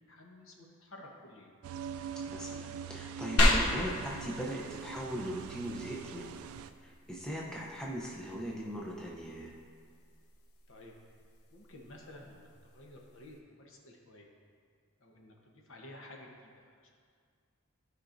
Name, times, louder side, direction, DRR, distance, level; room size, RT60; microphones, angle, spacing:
voice 1, 0.1-1.5 10.7-10.9 11.5-12.5 12.7-14.3 15.0-16.9, left 1 dB, 60° left, 0 dB, 1.0 m, -52 dB
sound 1, 1.6-6.7, right 7 dB, 75° right, 0.3 m, -43 dB
voice 2, 2.3-6.3 6.8-9.6, equal, 5° left, -3 dB, 0.6 m, -39 dB
sound 2, 3.4-13.4, left 1 dB, 85° left, 0.8 m, -35 dB
13.0 x 4.9 x 2.6 m, 2.1 s
head